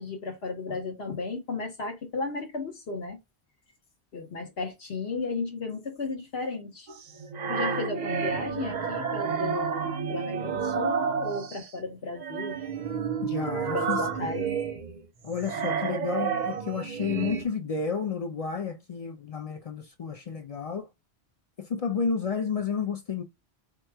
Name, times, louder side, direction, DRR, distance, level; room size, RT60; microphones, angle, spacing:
voice 1, 0.0-3.2 4.1-6.9 7.5-12.6 13.7-14.5, left 3 dB, 70° left, 1.4 m, -34 dB
sound 1, 6.9-11.7 12.2-17.4, right 6 dB, 50° right, 0.6 m, -30 dB
voice 2, 13.2-14.1 15.2-20.9 21.6-23.2, left 6 dB, 50° left, 0.5 m, -31 dB
3.5 x 2.9 x 4.5 m
omnidirectional pair, 1.1 m